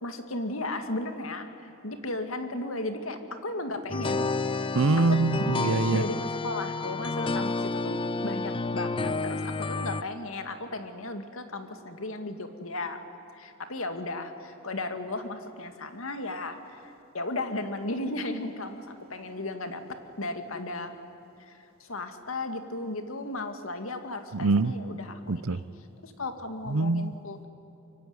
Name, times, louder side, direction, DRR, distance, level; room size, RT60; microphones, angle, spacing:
voice 1, 0.0-4.3 5.1-5.2 5.9-13.0 13.3-19.8 20.2-20.9 21.4-25.6 26.0-27.5, left 2 dB, 75° left, 2.4 m, -35 dB
sound 1, 3.9-10.0, left 3 dB, 25° left, 0.6 m, -30 dB
voice 2, 4.7-6.0 24.4-24.7 25.3-25.6 26.7-27.1, right 3 dB, 80° right, 0.7 m, -24 dB
25.0 x 23.5 x 9.7 m
head